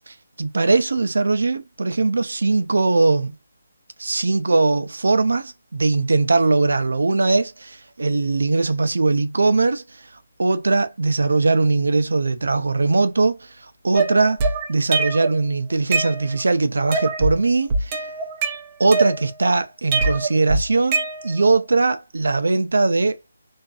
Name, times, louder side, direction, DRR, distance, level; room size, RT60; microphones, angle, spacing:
voice 1, 0.1-3.3 4.0-7.7 8.0-9.8 10.4-13.4 13.8-14.4 14.7-18.0 18.8-23.2, right 3 dB, 85° right, 0.4 m, -20 dB
sound 1, 13.9-15.4 15.7-16.5 16.9-17.4 17.7-19.5 19.9-21.5, right 3 dB, 20° right, 0.4 m, -23 dB
2.5 x 2.3 x 2.3 m
hypercardioid pair, 170°, 0 cm